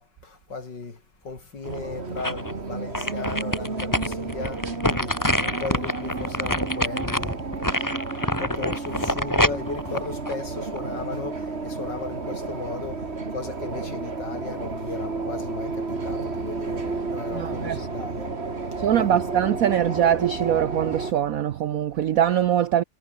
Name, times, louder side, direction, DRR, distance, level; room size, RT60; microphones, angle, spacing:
voice 1, 0.0-7.4 8.0-18.4 18.8-19.2, left 4 dB, 55° left, 4.3 m, -36 dB
sound 1, 1.6-21.1, right 3 dB, 30° right, 2.5 m, -32 dB
sound 2, 1.7-2.5 2.9-11.0 11.4-11.5, left 1 dB, 10° left, 3.3 m, -26 dB
voice 2, 17.3-17.9 18.8-22.8, right 10 dB, 70° right, 0.8 m, -22 dB
omnidirectional pair, 2.3 m